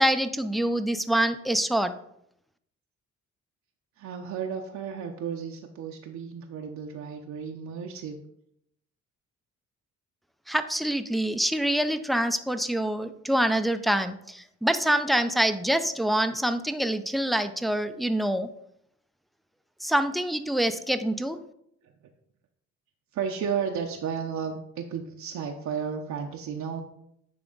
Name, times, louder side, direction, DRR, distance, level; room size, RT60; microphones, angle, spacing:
voice 1, 0.0-1.9 10.5-18.5 19.8-21.4, right 1 dB, ahead, 9 dB, 0.4 m, -25 dB
voice 2, 4.0-8.2 23.1-26.8, right 7 dB, 70° right, 2 dB, 0.7 m, -33 dB
9.8 x 3.4 x 3.9 m, 0.74 s
cardioid pair, 90°, 30 cm